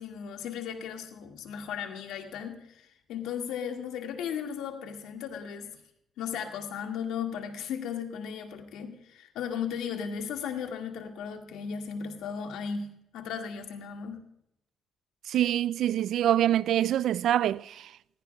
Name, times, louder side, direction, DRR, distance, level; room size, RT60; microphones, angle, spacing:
voice 1, 0.0-5.7 6.2-14.3, left 7 dB, 90° left, 1.8 m, -36 dB
voice 2, 15.3-17.7, right 11 dB, 75° right, 0.3 m, -25 dB
17.5 x 15.0 x 2.3 m
cardioid pair, 90°, 0 cm